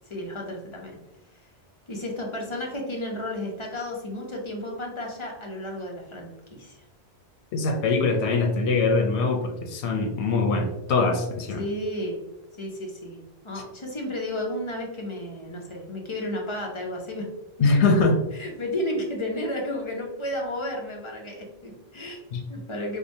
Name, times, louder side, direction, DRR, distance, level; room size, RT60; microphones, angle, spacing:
voice 1, 0.1-1.0 1.9-6.8 11.5-12.2 12.6-17.3 18.3-22.2 22.5-23.0, left 1 dB, 35° left, -1 dB, 0.6 m, -32 dB
voice 2, 7.5-11.6 17.6-18.2 22.3-22.4, left 3 dB, 85° left, 4 dB, 0.9 m, -22 dB
4.7 x 2.2 x 2.6 m, 0.92 s
omnidirectional pair, 1.1 m